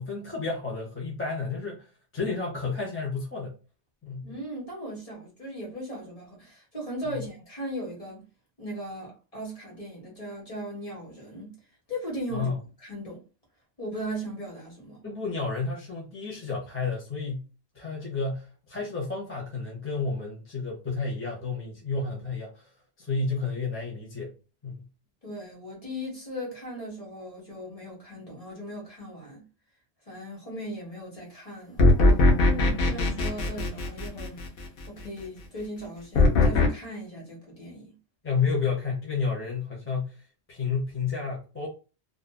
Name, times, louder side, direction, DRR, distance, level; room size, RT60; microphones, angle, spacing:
voice 1, 0.0-1.9 2.1-3.5 4.0-4.3 7.0-7.2 12.3-12.6 15.0-17.5 17.7-22.7 23.0-24.3 24.6-24.9 38.2-40.2 40.5-41.7, left 4 dB, 15° left, 0.6 m, -31 dB
voice 2, 4.2-8.2 8.6-11.5 11.9-12.5 12.8-13.2 13.8-15.0 25.2-29.4 30.1-31.9 32.4-34.4 34.9-37.9, equal, 35° left, 1.1 m, -38 dB
sound 1, 31.8-34.7 36.1-36.7, left 2 dB, 65° left, 0.8 m, -20 dB
2.5 x 2.3 x 2.2 m
omnidirectional pair, 1.1 m